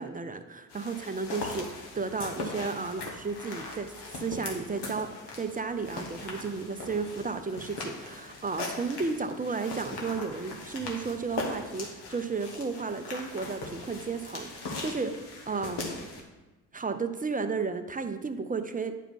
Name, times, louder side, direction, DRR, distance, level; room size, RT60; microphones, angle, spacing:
voice 1, 0.0-5.1 5.3-16.0 16.7-19.0, right 4 dB, 20° right, 8 dB, 0.7 m, -33 dB
sound 1, 0.7-16.2, left 3 dB, 65° left, 1.6 m, -40 dB
9.1 x 4.5 x 4.1 m, 1.1 s
hypercardioid pair, 45°, 44 cm